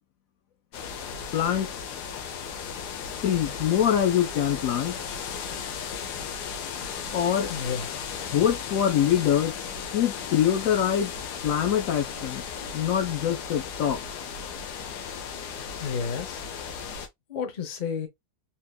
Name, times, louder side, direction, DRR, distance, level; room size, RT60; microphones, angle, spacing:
sound 1, 0.7-17.1, left 6 dB, 80° left, 1.3 m, -36 dB
voice 1, 1.3-1.7 3.2-5.0 7.1-7.5 8.3-9.5 9.9-11.1 11.4-12.4 12.7-14.0, left 9 dB, 65° left, 0.9 m, -24 dB
voice 2, 7.5-7.9 15.8-16.4 17.3-18.1, left 6 dB, 40° left, 0.6 m, -31 dB
3.6 x 2.8 x 2.2 m
omnidirectional pair, 1.7 m